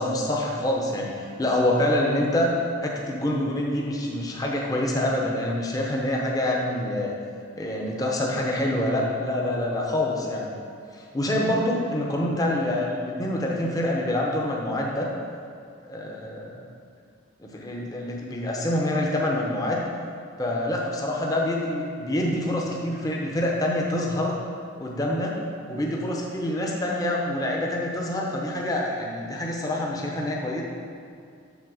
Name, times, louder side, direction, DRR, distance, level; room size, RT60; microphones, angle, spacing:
voice 1, 0.0-2.6 2.8-7.1 7.5-10.5 11.1-15.1 15.9-16.6 17.4-19.8 20.4-24.4 24.8-25.3 25.7-30.6, left 1 dB, 20° left, -2 dB, 0.8 m, -26 dB
7.3 x 4.2 x 6.2 m, 2.3 s
head